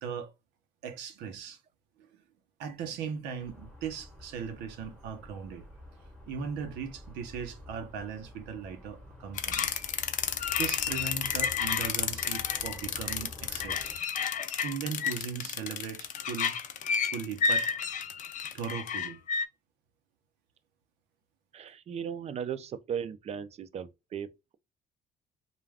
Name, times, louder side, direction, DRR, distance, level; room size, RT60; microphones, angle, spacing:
voice 1, 0.0-0.3 0.8-1.6 2.0-2.2 2.6-5.6 6.3-9.8 10.6-13.9 14.6-16.5 17.1-17.7 18.5-19.2, right 6 dB, 90° right, 0.7 m, -38 dB
sound 1, 3.4-14.0, left 2 dB, 5° left, 0.9 m, -49 dB
sound 2, 9.4-19.5, left 6 dB, 50° left, 0.5 m, -31 dB
voice 2, 21.5-24.6, right 8 dB, 40° right, 0.4 m, -37 dB
2.4 x 2.2 x 3.2 m
cardioid pair, 110°, 17 cm